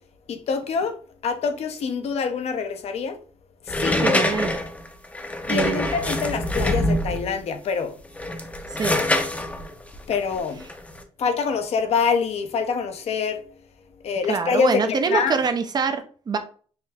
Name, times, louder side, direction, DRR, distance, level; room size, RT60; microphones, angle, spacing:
voice 1, 0.3-1.0 1.2-3.2 3.7-4.3 5.5-8.0 8.9-9.0 10.1-10.6 11.2-13.4 14.0-15.3, left 5 dB, 60° left, 0.7 m, -25 dB
sound 1, 3.7-7.3 8.0-11.0, left 1 dB, 10° left, 0.6 m, -25 dB
voice 2, 4.0-4.6 5.5-6.0 8.7-9.0 14.3-16.4, right 5 dB, 35° right, 0.6 m, -24 dB
5.7 x 2.1 x 2.7 m
cardioid pair, 105°, 12 cm